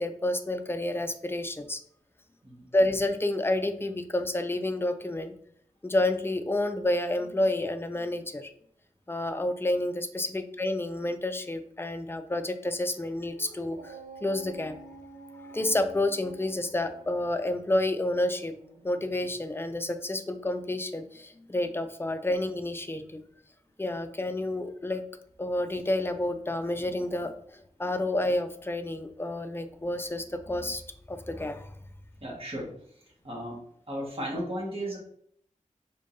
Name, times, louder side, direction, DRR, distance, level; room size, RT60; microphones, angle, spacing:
voice 1, 0.0-1.8 2.7-5.3 5.8-8.5 9.1-14.7 15.5-18.5 18.8-23.2 23.8-25.0 25.4-30.8 31.1-31.7, left 1 dB, 20° left, 8 dB, 0.5 m, -29 dB
Dog, 13.3-19.9, right 3 dB, 80° right, 0.6 m, -49 dB
voice 2, 32.2-33.6 33.9-35.0, equal, 45° right, -4 dB, 1.6 m, -36 dB
5.0 x 3.7 x 2.7 m, 0.65 s
wide cardioid pair, 70°, 13 cm